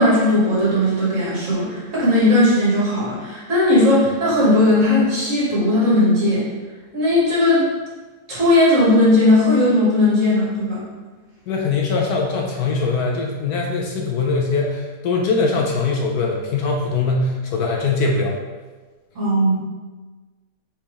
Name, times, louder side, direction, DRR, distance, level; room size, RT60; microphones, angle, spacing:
voice 1, 0.0-6.4 6.9-7.7 8.3-10.8 19.1-19.5, left 1 dB, 50° right, -7 dB, 1.6 m, -17 dB
voice 2, 11.5-18.4, left 3 dB, 70° left, 0 dB, 1.0 m, -21 dB
4.4 x 3.4 x 2.9 m, 1.3 s
omnidirectional pair, 1.8 m